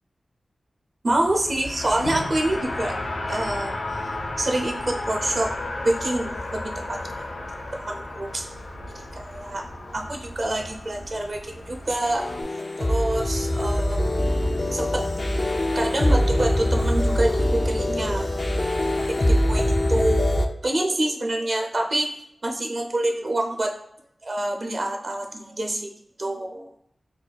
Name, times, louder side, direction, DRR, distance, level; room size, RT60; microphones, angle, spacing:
voice 1, 1.0-2.9 3.3-5.5 5.8-7.3 7.7-8.5 8.9-9.6 9.9-12.2 12.8-14.0 14.7-15.0 15.7-18.3 19.1-22.1 22.4-23.7 24.2-25.9 26.2-26.7, right 1 dB, 55° right, 2 dB, 0.5 m, -27 dB
Race car auto racing, 1.1-12.4, left 2 dB, 85° left, 0.7 m, -33 dB
sound 1, 12.0-20.5, left 1 dB, 40° left, 0.4 m, -23 dB
3.4 x 2.2 x 4.0 m, 0.73 s
cardioid pair, 60°, 0 cm